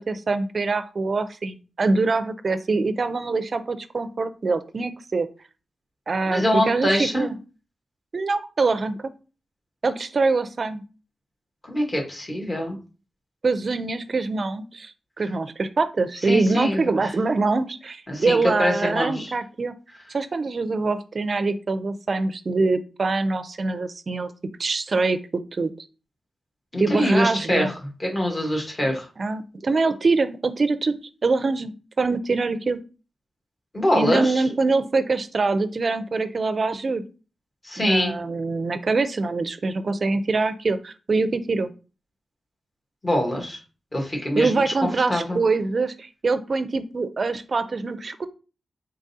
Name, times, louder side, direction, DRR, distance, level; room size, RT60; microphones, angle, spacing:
voice 1, 0.1-5.3 6.1-7.3 8.1-9.1 9.8-10.8 13.4-19.7 20.1-24.3 24.6-25.9 26.8-27.7 28.8-30.9 31.2-31.7 32.0-32.8 34.0-37.0 37.8-41.7 44.4-48.3, right 3 dB, 45° right, 12 dB, 0.4 m, -24 dB
voice 2, 6.2-7.3 11.7-12.8 16.3-16.9 18.1-19.3 26.7-27.7 28.0-29.1 33.7-34.4 37.6-38.1 43.0-43.6 43.9-45.4, left 1 dB, 25° left, 1 dB, 1.2 m, -24 dB
3.9 x 3.6 x 2.7 m, 0.34 s
wide cardioid pair, 125°, 0 cm